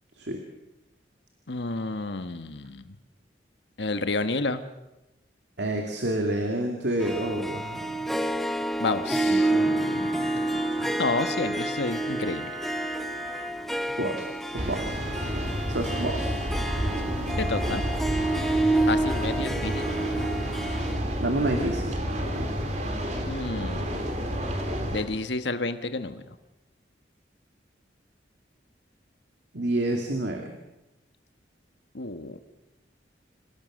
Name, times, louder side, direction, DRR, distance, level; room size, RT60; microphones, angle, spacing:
voice 1, 1.5-2.9 3.8-4.6 8.8-9.5 11.0-12.5 17.4-17.8 18.9-19.9 23.3-24.1 24.9-26.2 31.9-32.4, left 3 dB, 75° left, 9 dB, 1.3 m, -30 dB
voice 2, 5.6-8.3 9.1-10.9 13.8-15.0 15.7-16.4 21.2-21.9 29.5-30.5, right 1 dB, 75° right, 3 dB, 2.6 m, -30 dB
Harp, 7.0-21.0, right 2 dB, ahead, 0.9 m, -29 dB
Wind instrument woodwind instrument, 9.4-13.6, right 2 dB, 20° right, 3.9 m, -40 dB
sound 1, 14.6-25.0, equal, 40° right, 3.2 m, -30 dB
27.5 x 18.0 x 6.5 m, 0.95 s
head